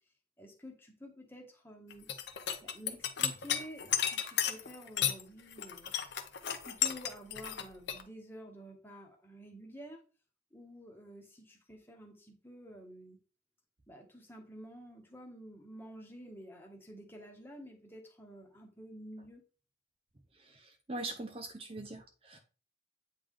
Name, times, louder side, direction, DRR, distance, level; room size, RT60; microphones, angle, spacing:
voice 1, 0.4-2.1 2.6-5.9 6.6-10.0 10.5-13.2 13.9-19.4, equal, 10° left, 1 dB, 1.2 m, -50 dB
sound 1, 1.9-5.2 5.5-8.0, left 9 dB, 65° left, 0.8 m, -33 dB
voice 2, 20.5-22.4, right 2 dB, 30° right, 5 dB, 0.6 m, -42 dB
8.6 x 3.4 x 3.8 m, 0.37 s
head